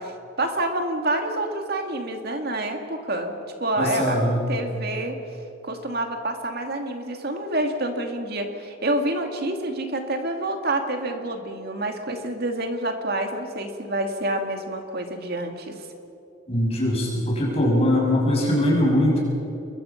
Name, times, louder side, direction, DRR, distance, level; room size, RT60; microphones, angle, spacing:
voice 1, 0.0-4.2 4.5-5.2 5.6-15.8, right 1 dB, 50° right, 4 dB, 2.4 m, -28 dB
voice 2, 3.8-4.4 16.5-19.2, left 1 dB, 30° left, -2 dB, 6.7 m, -21 dB
28.0 x 22.5 x 5.9 m, 2.7 s
head